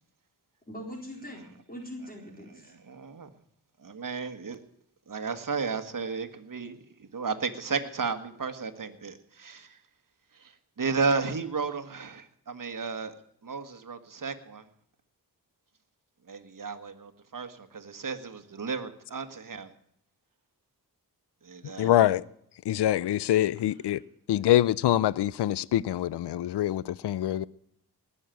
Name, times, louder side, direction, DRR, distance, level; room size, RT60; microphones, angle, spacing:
voice 1, 0.7-2.7, equal, 20° left, 4.0 m, -42 dB
voice 2, 2.9-3.3 3.8-4.6 5.1-9.8 10.3-13.1 13.4-14.6 16.3-19.7 21.4-22.0, right 4 dB, 55° right, 1.5 m, -33 dB
voice 3, 21.8-22.3 22.7-24.0 24.3-27.5, left 12 dB, 80° left, 0.5 m, -25 dB
19.0 x 6.7 x 9.1 m
cardioid pair, 65°, 40 cm